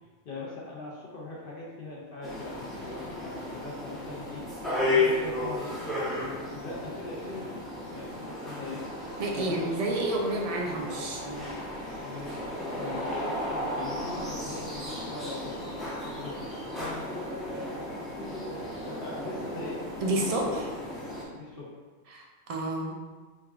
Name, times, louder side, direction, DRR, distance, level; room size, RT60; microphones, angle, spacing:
voice 1, 0.0-4.5 4.8-5.8 6.5-7.6 7.9-8.9 9.3-9.8 12.0-19.8 20.4-20.7 21.3-21.8, left 3 dB, 60° left, -5 dB, 0.8 m, -41 dB
sound 1, 2.2-21.2, left 2 dB, ahead, 0.5 m, -34 dB
voice 2, 9.2-11.5 20.0-20.7 22.1-22.9, right 2 dB, 60° right, 0 dB, 0.4 m, -30 dB
3.5 x 2.3 x 3.4 m, 1.4 s
omnidirectional pair, 1.1 m